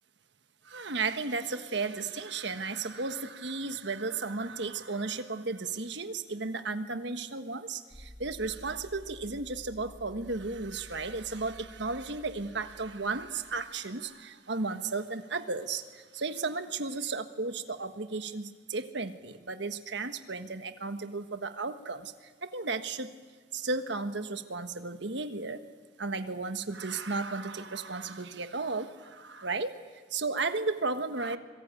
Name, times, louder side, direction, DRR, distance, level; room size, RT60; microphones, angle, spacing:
voice 1, 0.6-23.1 23.5-25.6 26.0-29.8 30.1-31.4, right 3 dB, 65° right, 9 dB, 1.4 m, -34 dB
sound 1, 7.9-14.0, equal, 25° left, 6.3 m, -52 dB
25.0 x 22.5 x 9.1 m, 1.4 s
head